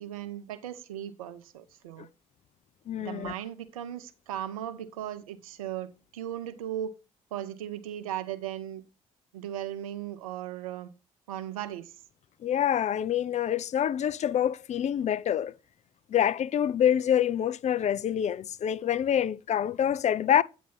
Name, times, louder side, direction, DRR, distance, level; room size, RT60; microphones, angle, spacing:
voice 1, 0.0-2.1 3.0-6.9 7.3-8.8 9.3-10.9 11.3-12.0, right 11 dB, 85° right, 0.6 m, -37 dB
voice 2, 2.9-3.3 12.4-15.5 16.1-20.4, left 10 dB, 40° left, 0.4 m, -26 dB
8.6 x 3.1 x 5.6 m
hypercardioid pair, 45°, 17 cm